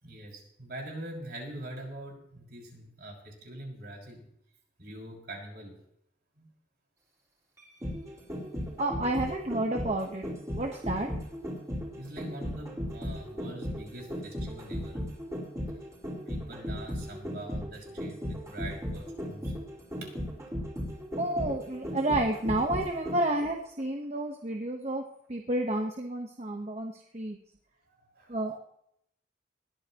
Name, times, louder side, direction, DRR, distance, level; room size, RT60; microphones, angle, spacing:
voice 1, 0.0-4.2 4.8-5.7 6.4-6.5 11.9-15.0 16.3-19.5 20.0-20.1 27.9-28.3, right 1 dB, 60° right, -1 dB, 5.9 m, -43 dB
sound 1, 7.6-23.4 23.8-23.9, equal, 20° right, 4.9 m, -36 dB
voice 2, 8.8-10.3 10.5-11.1 21.2-25.0 25.3-27.4 28.3-28.6, right 1 dB, 40° right, 2 dB, 1.2 m, -30 dB
20.5 x 13.5 x 3.0 m, 0.73 s
head